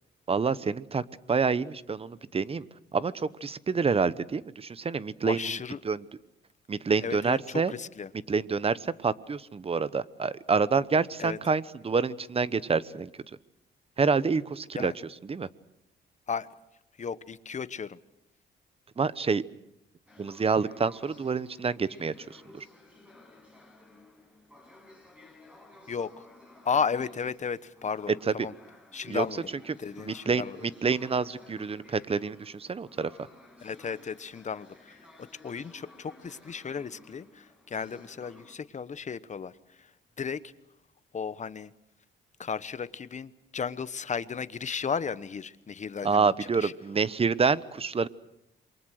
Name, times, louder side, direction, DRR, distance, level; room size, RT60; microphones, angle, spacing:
voice 1, 0.3-2.6 2.9-5.4 5.8-6.0 6.7-7.7 8.3-13.1 14.0-14.9 15.3-15.5 19.0-19.4 20.2-22.6 29.1-29.3 29.7-29.8 30.1-33.1 46.0-48.1, right 5 dB, 30° right, 17 dB, 0.9 m, -27 dB
voice 2, 5.2-5.8 7.0-8.1 11.2-11.4 14.7-15.0 16.3-16.5 17.0-18.0 25.9-26.3 26.6-28.5 28.9-29.5 29.8-30.6 33.6-39.9 40.2-40.5 41.1-41.7 42.4-46.7, left 6 dB, 35° left, 15 dB, 1.0 m, -34 dB
sound 1, 20.1-38.5, left 2 dB, 5° right, 6.2 m, -55 dB
27.5 x 23.0 x 6.5 m, 0.85 s
cardioid pair, 90°, 20 cm